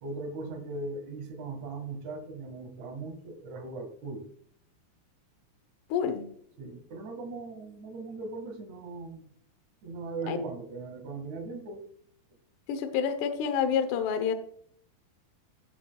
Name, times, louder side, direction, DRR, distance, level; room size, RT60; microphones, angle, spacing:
voice 1, 0.0-4.3 6.6-9.3 9.8-11.9, right 3 dB, 55° right, 3 dB, 2.6 m, -39 dB
voice 2, 5.9-6.2 10.3-10.4 12.7-14.3, left 7 dB, 75° left, 8 dB, 3.0 m, -28 dB
16.5 x 7.4 x 2.3 m, 0.62 s
omnidirectional pair, 5.0 m